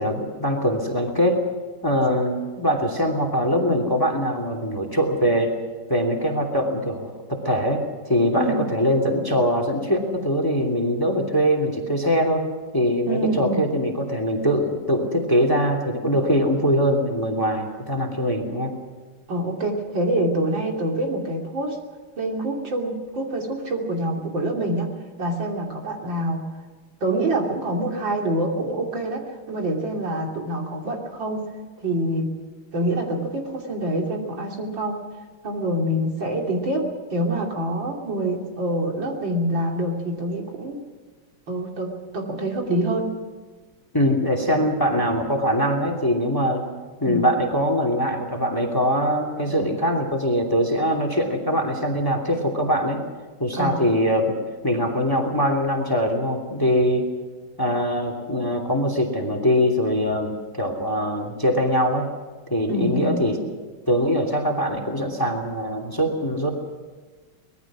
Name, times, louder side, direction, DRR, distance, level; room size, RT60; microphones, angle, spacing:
voice 1, 0.0-1.4 1.8-5.5 5.9-12.4 12.7-18.7 43.9-46.6 47.0-53.0 53.4-54.3 54.6-57.1 57.6-62.1 62.5-63.4 63.9-66.5, equal, 10° left, 2 dB, 2.7 m, -22 dB
voice 2, 8.3-8.6 13.1-13.7 19.3-21.8 22.2-24.9 25.2-26.4 27.0-31.4 31.8-32.3 32.7-35.0 35.4-40.8 41.5-43.1 47.0-47.3 53.5-53.9 62.7-63.3, right 1 dB, 65° right, 0 dB, 3.7 m, -26 dB
25.0 x 20.0 x 6.2 m, 1.4 s
omnidirectional pair, 2.2 m